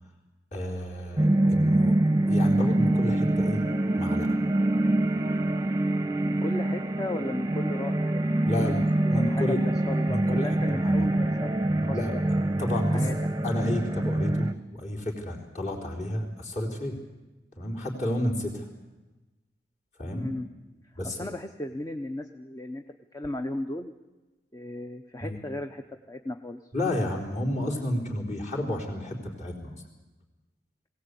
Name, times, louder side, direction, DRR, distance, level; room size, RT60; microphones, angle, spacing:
voice 1, 0.5-2.0 2.3-3.6 4.0-4.4 8.4-8.8 9.1-9.6 10.1-11.1 11.9-13.0 13.4-17.0 17.6-18.6 20.0-20.3 20.9-21.2 25.2-25.4 26.7-29.8, left 1 dB, 40° left, 0 dB, 3.9 m, -31 dB
sound 1, 1.2-14.5, right 1 dB, 20° right, 0.8 m, -25 dB
voice 2, 6.2-12.2 12.9-13.1 20.1-20.5 20.8-22.8 23.1-23.9 24.5-26.6, left 1 dB, 20° left, 6 dB, 0.7 m, -36 dB
21.0 x 17.0 x 8.3 m, 1.1 s
head